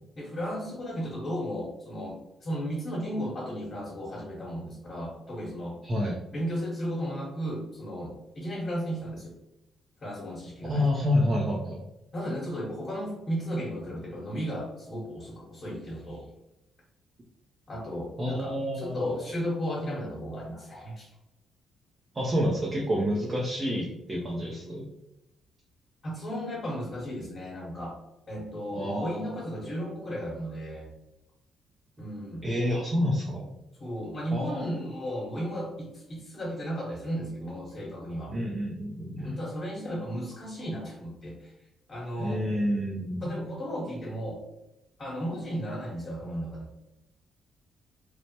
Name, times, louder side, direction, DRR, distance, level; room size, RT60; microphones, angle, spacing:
voice 1, 0.1-5.8 6.3-9.4 10.0-11.1 12.1-16.3 17.7-21.1 26.0-28.0 28.3-30.9 32.0-32.8 33.8-38.3 39.2-41.5 41.9-42.5 43.2-44.4 45.0-46.7, equal, 40° left, -6 dB, 1.1 m, -35 dB
voice 2, 5.8-6.2 10.6-11.8 18.2-19.2 22.1-24.9 28.7-29.2 32.4-33.5 34.3-34.6 38.3-39.4 42.2-43.3, left 1 dB, 30° right, -3 dB, 0.5 m, -28 dB
3.1 x 2.1 x 2.8 m, 0.89 s
cardioid pair, 90°, 0 cm